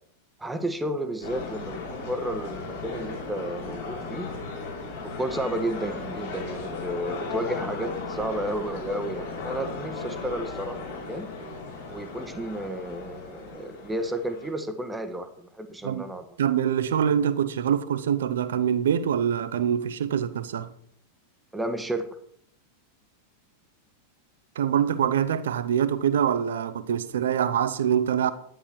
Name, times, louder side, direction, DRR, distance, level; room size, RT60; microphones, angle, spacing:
voice 1, 0.4-4.3 5.2-11.3 11.9-16.2 21.5-22.2, right 1 dB, 5° right, 1.2 m, -32 dB
sound 1, 1.2-14.5, left 3 dB, 60° left, 4.9 m, -36 dB
voice 2, 16.4-20.7 24.5-28.3, right 9 dB, 60° right, 0.8 m, -24 dB
11.0 x 9.8 x 4.6 m
figure-of-eight pair, 90°, 0 cm